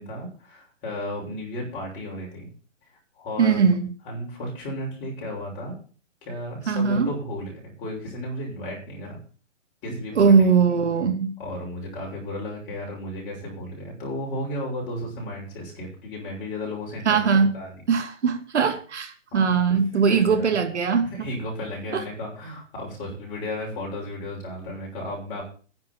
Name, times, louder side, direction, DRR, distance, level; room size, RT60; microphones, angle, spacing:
voice 1, 0.0-2.5 3.2-3.6 4.0-5.7 6.2-9.2 9.8-10.5 11.4-17.2 17.5-17.8 19.3-19.5 20.1-20.5 21.0-25.4, left 1 dB, 20° left, 6.4 m, -34 dB
voice 2, 3.4-3.9 6.7-7.1 10.2-11.3 17.1-17.5 17.9-21.3 21.9-22.1, right 5 dB, 65° right, 2.6 m, -20 dB
10.5 x 7.9 x 8.9 m
hypercardioid pair, 165°, 37 cm